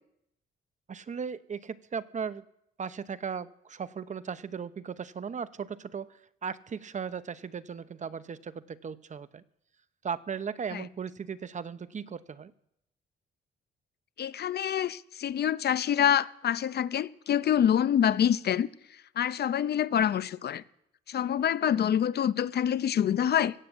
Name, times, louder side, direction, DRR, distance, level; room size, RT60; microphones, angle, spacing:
voice 1, 0.9-2.4 2.8-6.1 6.4-9.4 10.0-12.5, right 6 dB, 40° right, 0.8 m, -37 dB
voice 2, 14.2-18.7 19.2-20.6 21.1-23.5, left 9 dB, 55° left, 0.7 m, -26 dB
16.5 x 7.9 x 7.9 m
cardioid pair, 90°, 20 cm